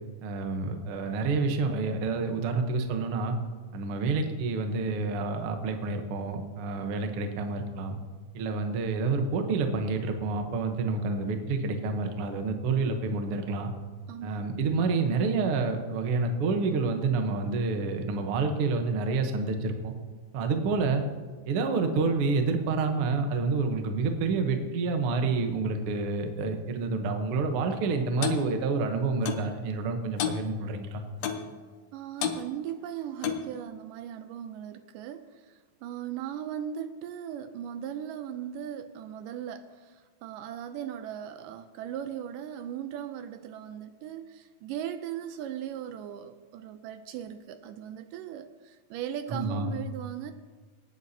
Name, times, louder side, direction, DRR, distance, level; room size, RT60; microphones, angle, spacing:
voice 1, 0.2-3.4 3.7-8.0 8.3-13.7 14.2-19.9 20.3-21.0 21.5-31.0 49.3-49.7, right 4 dB, 65° right, 5 dB, 1.5 m, -28 dB
voice 2, 14.1-14.4 31.9-50.3, right 9 dB, 80° right, 9 dB, 2.1 m, -38 dB
Clock, 28.2-28.4 29.3-29.5 30.2-30.4 31.2-31.5 32.2-32.4 33.2-33.5, left 8 dB, 70° left, 1.7 m, -30 dB
25.0 x 9.3 x 2.8 m, 1.5 s
omnidirectional pair, 3.9 m